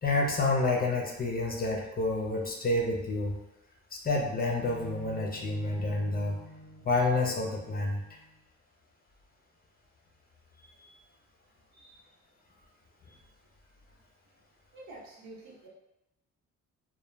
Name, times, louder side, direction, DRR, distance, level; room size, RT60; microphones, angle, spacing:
voice 1, 0.0-3.4 3.9-6.4 6.8-8.0, left 2 dB, 30° left, 0 dB, 0.5 m, -29 dB
sound 1, 4.6-8.4, equal, 35° right, 0.5 m, -48 dB
voice 2, 11.7-12.1 14.7-15.7, right 2 dB, 80° right, -5 dB, 1.0 m, -49 dB
2.2 x 2.1 x 3.1 m, 0.92 s
cardioid pair, 90°, 30 cm